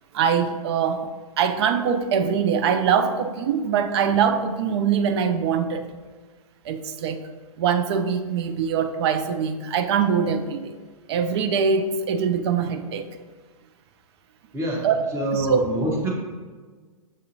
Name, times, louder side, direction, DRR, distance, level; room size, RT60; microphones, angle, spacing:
voice 1, 0.1-1.1 1.4-5.8 6.7-7.2 7.6-10.7 11.1-13.1 14.8-15.0 15.3-15.6, right 7 dB, 45° right, 7 dB, 0.4 m, -23 dB
voice 2, 14.5-16.1, right 1 dB, 15° right, -2 dB, 0.9 m, -26 dB
7.2 x 2.7 x 2.7 m, 1.4 s
figure-of-eight pair, 115°, 19 cm